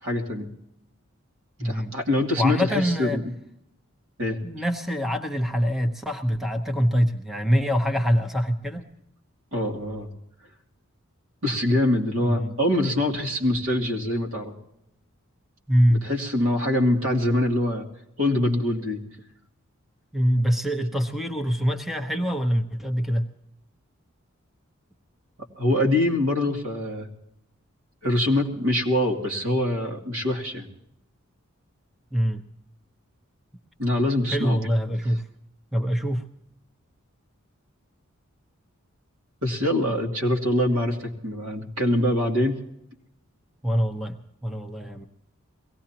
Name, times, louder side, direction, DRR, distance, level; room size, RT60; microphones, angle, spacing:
voice 1, 0.0-0.5 1.6-3.3 4.2-4.4 9.5-10.1 11.4-14.5 15.9-17.9 18.2-19.0 25.6-27.1 28.0-30.7 33.8-34.6 39.4-41.0 41.2-42.5, left 1 dB, 70° right, 0 dB, 2.8 m, -24 dB
voice 2, 1.6-1.9 2.4-3.2 4.3-8.8 12.2-12.5 15.7-16.1 20.1-23.3 32.1-32.4 34.3-35.2 35.7-36.2 43.6-45.1, equal, ahead, 4 dB, 0.9 m, -24 dB
22.5 x 17.5 x 2.9 m, 0.79 s
head